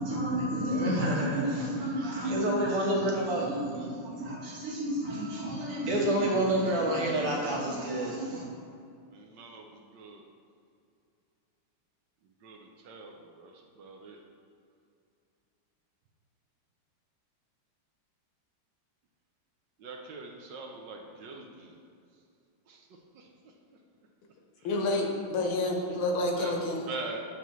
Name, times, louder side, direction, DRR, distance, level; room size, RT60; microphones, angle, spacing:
voice 1, 0.0-8.5, right 1 dB, 90° right, -3 dB, 2.2 m, -29 dB
voice 2, 1.8-3.2 3.7-4.0 9.1-10.3 12.2-14.2 19.8-21.8 22.1-22.2 22.7-23.5 24.6-25.1 26.4-27.2, right 3 dB, 70° right, 1 dB, 1.2 m, -44 dB
voice 3, 24.6-26.8, left 2 dB, 75° left, 1 dB, 1.7 m, -29 dB
8.2 x 5.8 x 3.1 m, 2.4 s
omnidirectional pair, 2.4 m